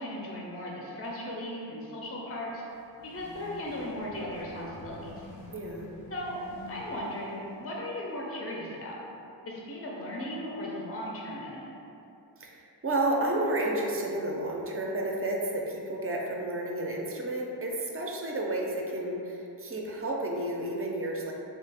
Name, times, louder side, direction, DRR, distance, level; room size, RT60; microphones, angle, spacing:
voice 1, 0.0-2.6 3.0-5.2 6.1-6.4 6.7-9.0 9.5-11.8, left 1 dB, 35° left, -3 dB, 0.5 m, -37 dB
sound 1, 2.5-7.8, left 3 dB, 80° left, 0.7 m, -48 dB
voice 2, 5.5-5.9 12.4-21.3, right 1 dB, 35° right, -1 dB, 0.4 m, -31 dB
3.1 x 2.3 x 3.3 m, 2.8 s
wide cardioid pair, 95°, 42 cm